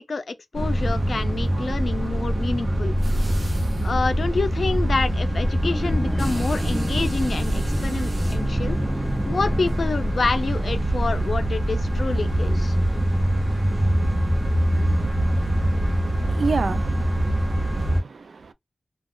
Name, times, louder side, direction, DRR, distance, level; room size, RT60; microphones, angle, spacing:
voice 1, 0.0-3.0 3.8-8.8 9.3-12.7, left 3 dB, 65° left, 0.5 m, -28 dB
sound 1, 0.5-18.0, equal, 55° right, 0.9 m, -23 dB
sound 2, 5.6-10.9, equal, 10° left, 0.5 m, -31 dB
voice 2, 16.2-18.5, right 4 dB, 75° right, 0.4 m, -30 dB
2.3 x 2.3 x 3.6 m
wide cardioid pair, 65°, 0 cm